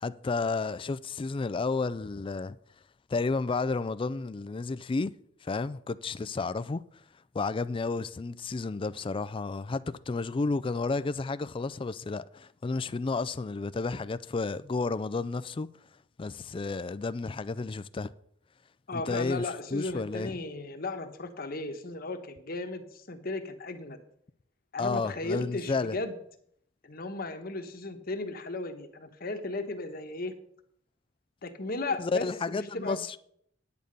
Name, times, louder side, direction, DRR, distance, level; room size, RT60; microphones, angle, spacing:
voice 1, 0.0-2.6 3.1-5.1 5.4-6.8 7.3-15.7 16.2-18.1 18.9-20.4 24.8-26.0 32.0-33.2, left 3 dB, 25° left, 0.4 m, -32 dB
voice 2, 18.9-24.0 24.7-26.2 26.8-30.3 31.4-33.0, left 2 dB, 50° left, 1.2 m, -35 dB
9.4 x 8.6 x 5.2 m
head